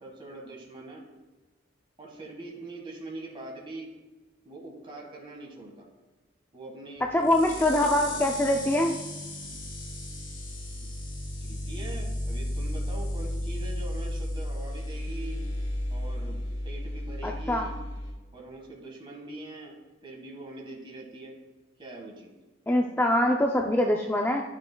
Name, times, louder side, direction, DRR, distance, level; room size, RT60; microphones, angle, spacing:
voice 1, 0.0-1.1 2.0-3.9 4.4-5.9 6.5-7.9 10.8-10.9 11.4-15.4 15.9-17.8 18.3-19.8 20.0-21.3 21.8-22.3, right 2 dB, 25° right, 0 dB, 1.5 m, -43 dB
sound 1, 7.0-18.1, left 1 dB, 80° left, 1.8 m, -34 dB
voice 2, 7.1-8.9 17.2-17.7 22.7-24.4, left 1 dB, 10° left, 1 dB, 0.3 m, -24 dB
11.0 x 6.1 x 2.2 m, 1.2 s
head